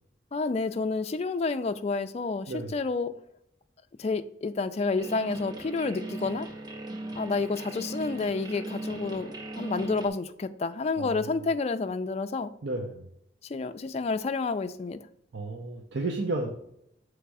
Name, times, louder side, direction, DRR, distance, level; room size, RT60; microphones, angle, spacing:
voice 1, 0.3-3.1 4.0-6.5 7.2-12.5 13.4-15.0, left 4 dB, 35° left, 0.3 m, -30 dB
sound 1, 5.0-10.1, right 1 dB, 20° right, 0.7 m, -38 dB
voice 2, 11.0-11.3 12.6-13.1 15.3-16.5, right 2 dB, 85° right, 0.7 m, -32 dB
7.1 x 3.3 x 4.7 m
head